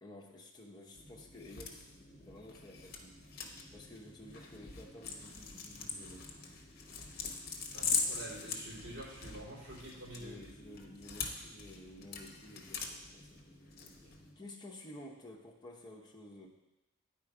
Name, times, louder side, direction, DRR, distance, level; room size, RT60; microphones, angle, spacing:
voice 1, 0.0-3.2 3.7-6.3 10.1-13.4 14.4-16.5, left 1 dB, 20° left, -3 dB, 0.9 m, -52 dB
sound 1, 1.0-14.3, left 5 dB, 50° left, 0.9 m, -42 dB
voice 2, 7.7-10.4 13.8-14.1, right 1 dB, 65° right, -6 dB, 3.1 m, -48 dB
9.5 x 4.4 x 4.9 m, 1.0 s
head